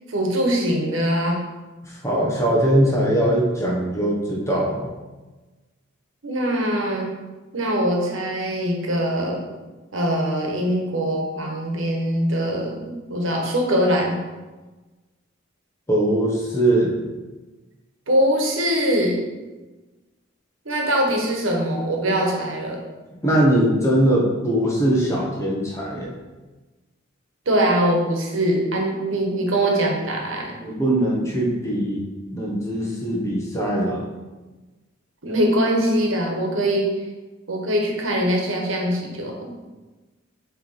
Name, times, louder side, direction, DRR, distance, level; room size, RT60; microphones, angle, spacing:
voice 1, 0.1-1.4 6.2-7.1 7.5-9.4 9.9-14.2 18.1-19.2 20.6-22.8 27.4-30.6 35.2-36.9 37.5-39.5, equal, 85° right, 1 dB, 1.2 m, -22 dB
voice 2, 1.8-4.9 15.9-17.0 23.2-26.1 30.6-34.1, right 1 dB, 15° left, -3 dB, 1.1 m, -21 dB
7.7 x 3.3 x 4.2 m, 1.2 s
head